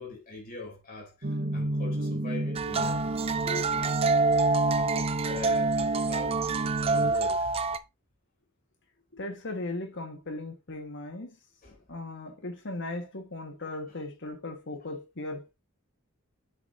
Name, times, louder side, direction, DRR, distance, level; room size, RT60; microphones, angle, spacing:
voice 1, 0.0-3.0 3.4-4.0 4.8-7.6 11.6-11.8, left 3 dB, 40° left, 3.4 m, -42 dB
sound 1, 1.2-7.1, right 1 dB, 45° right, 0.8 m, -31 dB
sound 2, 2.5-7.8, right 4 dB, 25° right, 0.4 m, -27 dB
voice 2, 9.1-11.4 11.9-15.5, left 2 dB, 60° left, 1.6 m, -37 dB
7.4 x 7.0 x 2.7 m
head